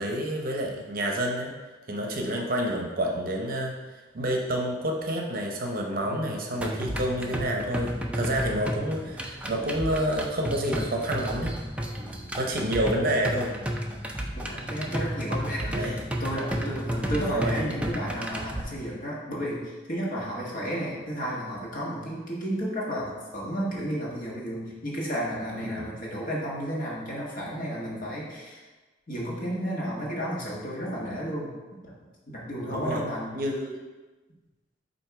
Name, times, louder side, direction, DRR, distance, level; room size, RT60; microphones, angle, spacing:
voice 1, 0.0-1.5 1.9-11.6 12.4-13.5 15.6-16.0 17.1-17.6 25.6-25.9 32.7-33.0 33.3-33.8, right 1 dB, 50° right, 1 dB, 0.7 m, -29 dB
sound 1, 6.6-18.6, equal, 5° right, 0.4 m, -32 dB
voice 2, 14.4-28.6 29.1-31.5 31.8-31.9 32.3-33.3, equal, 45° left, -5 dB, 1.5 m, -32 dB
7.7 x 2.7 x 4.7 m, 1.2 s
head